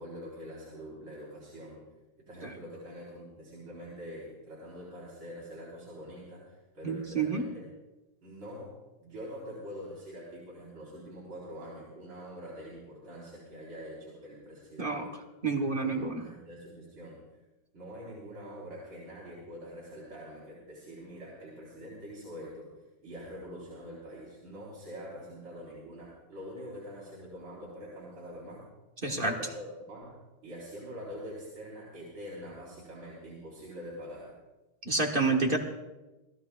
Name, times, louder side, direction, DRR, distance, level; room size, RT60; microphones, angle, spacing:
voice 1, 0.0-1.8 2.3-7.7 8.2-15.0 15.5-17.2 17.7-22.7 23.0-28.6 29.1-30.1 30.4-34.3, equal, 75° right, -7 dB, 4.9 m, -45 dB
voice 2, 6.8-7.4 14.8-15.1 15.4-16.2 29.0-29.3 34.8-35.6, right 3 dB, 30° right, 2 dB, 1.3 m, -28 dB
28.5 x 17.0 x 2.3 m, 1.1 s
omnidirectional pair, 2.2 m